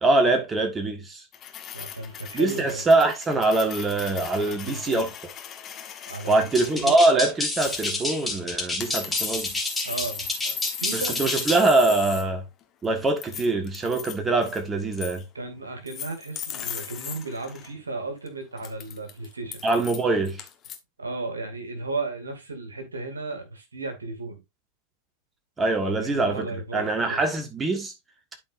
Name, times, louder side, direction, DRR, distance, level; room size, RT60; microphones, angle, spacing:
voice 1, 0.0-1.2 2.3-5.1 6.3-9.5 10.9-12.4 12.8-15.2 19.6-20.4 25.6-26.5 26.7-27.9, right 2 dB, 15° right, 1.6 m, -23 dB
sound 1, 1.3-7.0 7.6-8.3 8.8-12.3 12.6-14.2 14.4-14.7 14.9-15.2 15.9-17.7 18.3-18.4 18.6-20.8, left 9 dB, 30° left, 1.5 m, -38 dB
voice 2, 1.7-2.8 4.4-5.0 6.1-6.9 9.8-11.2 15.3-19.6 21.0-24.4 25.8-27.2, right 3 dB, 75° right, 2.4 m, -35 dB
sound 2, 6.5-11.7, left 2 dB, 5° left, 3.1 m, -29 dB
12.0 x 4.7 x 2.6 m
figure-of-eight pair, 90°, 0 cm